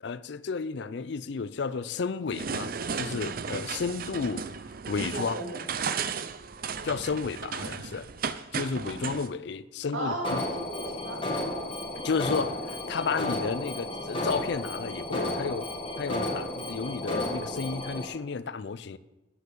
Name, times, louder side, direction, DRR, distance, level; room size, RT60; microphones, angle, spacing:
voice 1, 0.0-4.5 4.9-5.4 6.8-8.1 8.5-10.4 12.0-15.7 16.0-19.0, left 5 dB, 55° left, 0.4 m, -32 dB
sound 1, 2.3-9.3, right 6 dB, 45° right, 0.5 m, -35 dB
voice 2, 4.9-5.6 8.8-8.9 9.9-11.6, right 1 dB, 75° right, 3.2 m, -36 dB
Alarm, 10.2-18.0, left 1 dB, 25° left, 2.1 m, -33 dB
9.2 x 8.3 x 6.6 m
head